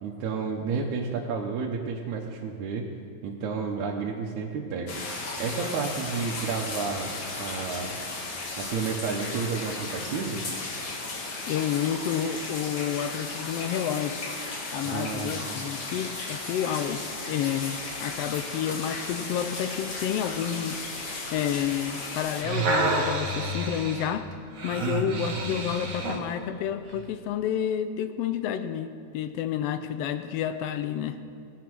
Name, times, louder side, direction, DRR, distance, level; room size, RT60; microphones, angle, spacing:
voice 1, 0.0-2.9 3.2-7.9 8.6-10.4 14.8-15.4 24.8-25.3, right 5 dB, 85° right, -2 dB, 2.4 m, -31 dB
sound 1, 4.9-22.4, left 3 dB, 45° left, 2.0 m, -35 dB
voice 2, 11.5-14.2 14.7-20.8 21.3-24.3 24.6-31.2, left 9 dB, 80° left, 10 dB, 1.4 m, -30 dB
sound 2, 22.2-26.3 26.9-27.0, right 2 dB, 40° right, 1.3 m, -29 dB
18.5 x 8.4 x 6.1 m, 2.3 s
omnidirectional pair, 3.3 m